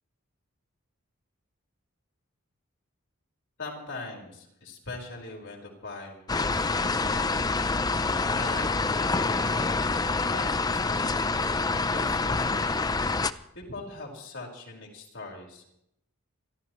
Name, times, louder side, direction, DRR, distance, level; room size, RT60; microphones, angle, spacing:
voice 1, 3.6-9.8 10.2-12.9 13.2-15.7, left 2 dB, 60° left, -1 dB, 4.6 m, -42 dB
sound 1, 6.3-13.3, left 3 dB, 20° left, 0.5 m, -26 dB
28.5 x 13.5 x 3.2 m, 0.77 s
head